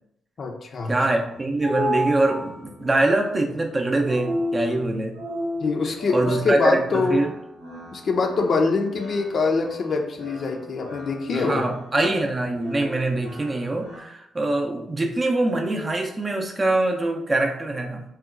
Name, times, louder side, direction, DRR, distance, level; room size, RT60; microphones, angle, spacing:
voice 1, 0.4-1.0 5.6-7.2 7.9-11.6, left 4 dB, 55° left, 3 dB, 0.4 m, -24 dB
voice 2, 0.9-5.1 6.1-7.3 11.3-18.0, right 2 dB, 30° right, 2 dB, 0.5 m, -24 dB
sound 1, 1.3-14.0, equal, 85° right, 1.0 m, -34 dB
2.8 x 2.2 x 2.4 m, 0.80 s
hypercardioid pair, 40°, 0 cm